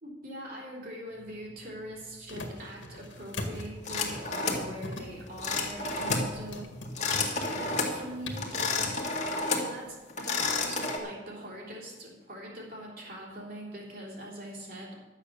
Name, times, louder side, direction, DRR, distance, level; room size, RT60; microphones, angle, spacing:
voice 1, 0.0-6.7 7.5-9.0 9.6-14.9, equal, 50° right, -3 dB, 3.7 m, -42 dB
sound 1, 1.1-9.0, left 1 dB, 70° left, 1.9 m, -41 dB
sound 2, 3.9-4.7 5.4-6.3 6.8-8.0 8.4-9.7 10.1-11.0, left 3 dB, 40° left, 2.0 m, -30 dB
12.0 x 8.2 x 6.9 m, 1.2 s
head